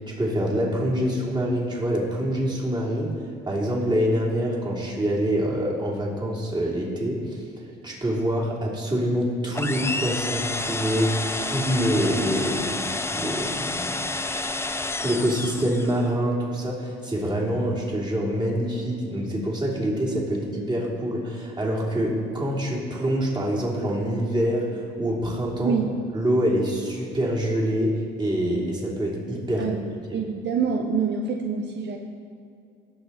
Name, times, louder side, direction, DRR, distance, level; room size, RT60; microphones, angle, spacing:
voice 1, 0.0-7.4 7.8-12.8 13.1-14.0 15.0-25.8 26.1-29.7 30.1-30.2, equal, 20° right, -3 dB, 3.0 m, -25 dB
sound 1, 9.5-16.0, left 2 dB, 15° left, 0.5 m, -29 dB
voice 2, 30.1-32.0, right 6 dB, 60° right, 3 dB, 0.8 m, -26 dB
18.0 x 6.6 x 4.1 m, 2.5 s
cardioid pair, 90°, 20 cm